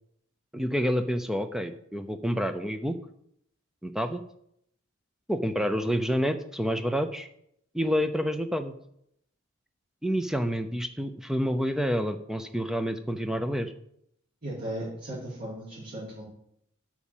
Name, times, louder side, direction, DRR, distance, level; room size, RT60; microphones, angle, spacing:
voice 1, 0.5-3.0 3.8-4.2 5.3-7.3 7.7-8.7 10.0-13.7, equal, ahead, 8 dB, 0.6 m, -28 dB
voice 2, 14.4-16.2, right 1 dB, 45° right, -12 dB, 4.8 m, -36 dB
8.4 x 6.2 x 7.3 m, 0.73 s
head